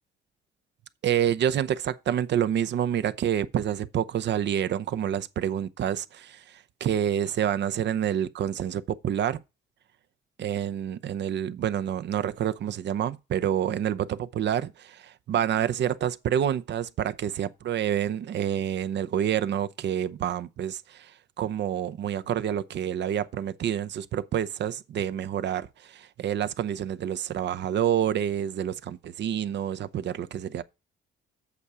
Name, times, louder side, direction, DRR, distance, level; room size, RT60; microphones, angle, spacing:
voice 1, 1.0-9.4 10.4-30.6, right 10 dB, 60° right, 0.7 m, -28 dB
8.3 x 6.8 x 4.8 m
cardioid pair, 90°, 20 cm